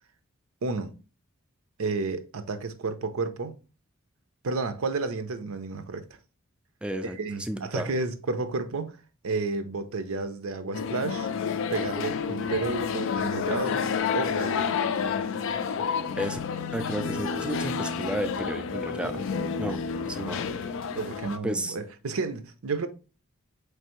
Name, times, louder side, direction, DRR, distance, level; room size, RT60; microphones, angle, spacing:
voice 1, 0.6-0.9 1.8-3.5 4.4-6.1 7.0-9.0 9.2-11.3 11.7-13.8 14.1-14.8 20.9-22.9, right 3 dB, 75° right, 0.6 m, -31 dB
voice 2, 6.8-7.9 16.2-16.4 16.7-19.3 19.6-19.8 20.0-20.5 21.4-21.8, equal, 5° right, 0.3 m, -32 dB
sound 1, 10.7-21.4, left 6 dB, 65° left, 0.4 m, -30 dB
4.4 x 3.3 x 3.0 m
head